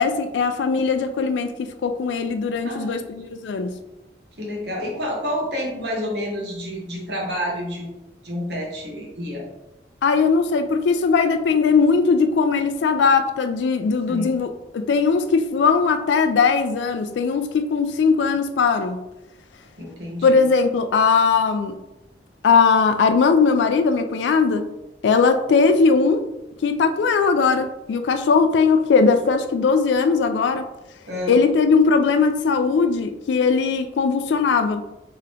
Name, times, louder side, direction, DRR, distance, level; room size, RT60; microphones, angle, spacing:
voice 1, 0.0-3.8 10.0-19.0 20.2-21.7 22.4-24.7 25.0-26.2 26.6-30.6 31.3-34.8, left 5 dB, 85° left, 8 dB, 0.3 m, -19 dB
voice 2, 2.6-3.3 4.4-7.9 8.2-9.5 14.1-14.4 19.8-20.5 31.1-31.4, equal, 80° right, -2 dB, 1.2 m, -29 dB
3.5 x 2.8 x 3.4 m, 0.94 s
head